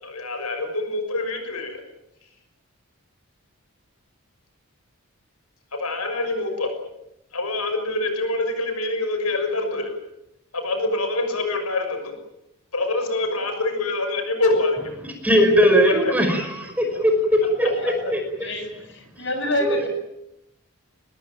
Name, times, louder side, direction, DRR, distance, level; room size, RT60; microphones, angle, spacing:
voice 1, 0.0-1.8 5.7-6.7 7.3-9.9 10.5-12.1 12.7-14.8 15.9-16.1 17.6-17.7, left 2 dB, 85° left, 6 dB, 6.2 m, -25 dB
voice 2, 15.2-18.2 19.2-19.3 19.6-19.9, equal, 5° right, 4 dB, 5.3 m, -19 dB
voice 3, 17.8-18.1 18.4-19.9, left 1 dB, 55° left, 6 dB, 6.8 m, -28 dB
24.5 x 21.0 x 9.1 m, 0.85 s
head